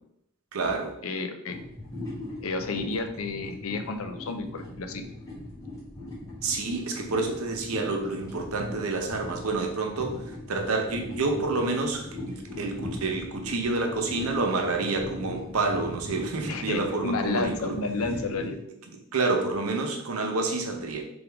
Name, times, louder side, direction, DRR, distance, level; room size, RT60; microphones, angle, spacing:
voice 1, 0.5-0.9 6.4-17.8 18.9-21.0, right 3 dB, 75° right, 2 dB, 0.8 m, -28 dB
voice 2, 1.0-1.6 2.4-5.0 16.5-18.6, left 3 dB, 70° left, 7 dB, 0.5 m, -31 dB
sound 1, 1.5-18.5, left 1 dB, 15° left, 1.5 m, -39 dB
3.6 x 3.5 x 3.4 m, 0.79 s
head